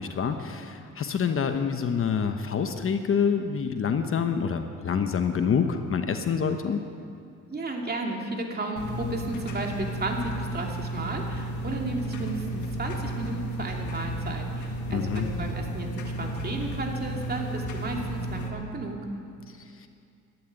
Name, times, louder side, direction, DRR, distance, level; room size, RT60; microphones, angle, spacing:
voice 1, 0.0-6.8 14.9-15.3 19.8-19.9, left 6 dB, 45° left, 7 dB, 1.1 m, -27 dB
voice 2, 7.5-19.0, right 2 dB, 30° right, 1 dB, 2.7 m, -33 dB
sound 1, 8.8-18.5, right 1 dB, 75° left, 1.9 m, -33 dB
13.0 x 11.5 x 9.6 m, 2.4 s
cardioid pair, 90°, 30 cm